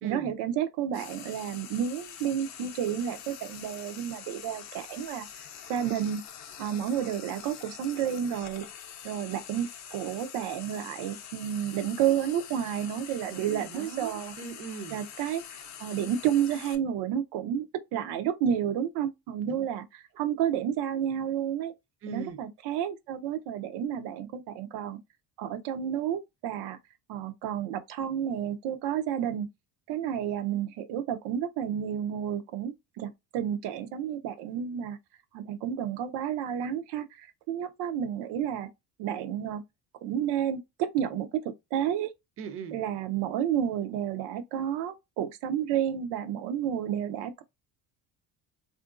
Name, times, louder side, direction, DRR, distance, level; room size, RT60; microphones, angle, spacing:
voice 1, 0.0-5.3 5.7-6.2 6.6-8.6 9.0-14.3 14.9-15.4 15.8-17.6 17.9-21.7 22.1-25.0 25.4-26.8 27.1-29.5 29.9-35.0 35.3-38.7 39.0-39.6 40.0-42.1 42.7-47.4, right 9 dB, 90° right, 0.6 m, -31 dB
Frying (food), 0.9-16.8, left 8 dB, 45° left, 0.5 m, -45 dB
voice 2, 13.3-15.0 19.4-19.6 22.0-22.4 42.4-42.8, right 6 dB, 35° right, 0.4 m, -39 dB
3.6 x 2.5 x 2.4 m
cardioid pair, 170°, 40 cm